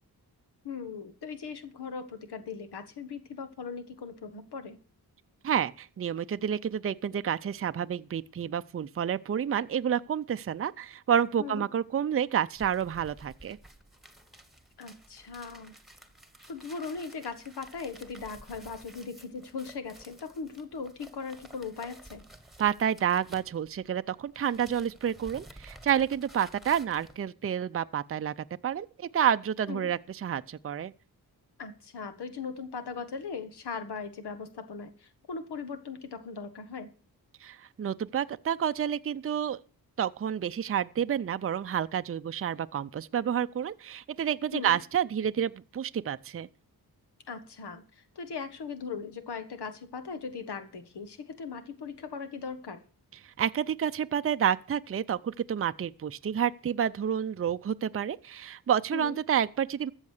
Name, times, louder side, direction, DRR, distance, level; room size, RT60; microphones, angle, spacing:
voice 1, 0.6-4.8 11.4-11.6 14.8-15.7 16.5-22.2 29.7-29.9 31.6-36.9 44.5-44.8 47.3-52.8 58.9-59.2, left 5 dB, 85° left, 1.5 m, -39 dB
voice 2, 5.4-13.6 22.6-28.3 28.6-30.9 37.4-39.6 40.0-46.5 53.2-59.9, right 9 dB, 35° right, 0.5 m, -29 dB
sound 1, 12.5-24.0 24.3-27.2, right 1 dB, ahead, 1.6 m, -53 dB
14.0 x 7.2 x 6.6 m
wide cardioid pair, 90°, 39 cm